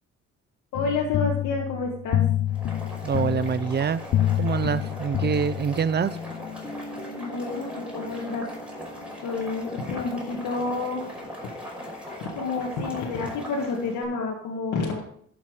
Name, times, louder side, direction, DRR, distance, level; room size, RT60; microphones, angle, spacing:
voice 1, 0.7-2.2 7.0-8.5 9.2-11.0 11.4-11.5 12.1-15.0, left 4 dB, 85° left, 1.8 m, -29 dB
sound 1, 0.7-6.0, left 12 dB, 50° left, 0.5 m, -27 dB
Boiling, 2.5-14.0, equal, 5° right, 5.5 m, -39 dB
voice 2, 3.0-4.0 4.3-6.2, right 7 dB, 35° right, 0.6 m, -25 dB
Guitar, 6.0-11.0, left 2 dB, 15° left, 1.3 m, -42 dB
12.0 x 7.2 x 5.0 m
cardioid pair, 90°, 30 cm